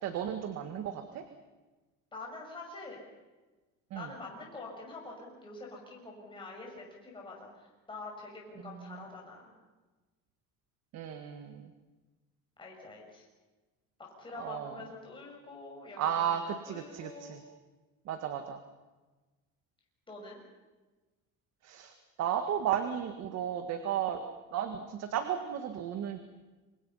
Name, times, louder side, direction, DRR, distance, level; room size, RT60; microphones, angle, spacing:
voice 1, 0.0-1.2 3.9-4.1 8.6-9.0 10.9-11.7 14.3-14.8 16.0-17.4 18.1-18.6 21.6-21.9 22.2-24.2 24.5-26.2, right 9 dB, 50° right, 7 dB, 1.9 m, -34 dB
voice 2, 2.1-3.0 3.9-9.5 12.6-13.2 14.2-16.4 16.6-17.3 20.1-20.4, left 3 dB, 15° left, -2 dB, 6.3 m, -46 dB
28.0 x 25.0 x 5.7 m, 1.2 s
cardioid pair, 155°, 34 cm